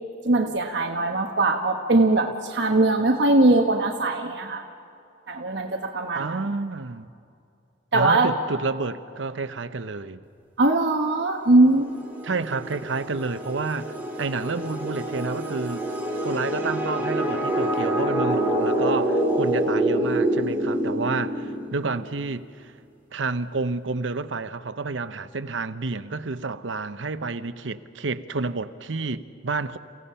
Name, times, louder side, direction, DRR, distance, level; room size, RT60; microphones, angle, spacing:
voice 1, 0.2-4.6 5.3-6.4 7.9-8.3 10.6-11.9, right 2 dB, 65° right, 1.2 m, -21 dB
voice 2, 6.1-7.1 7.9-10.2 12.2-13.9 14.2-15.8 16.2-22.7 23.1-29.8, right 3 dB, 85° right, 0.8 m, -30 dB
sound 1, 11.6-22.1, right 1 dB, 10° right, 2.8 m, -26 dB
30.0 x 16.5 x 5.6 m
head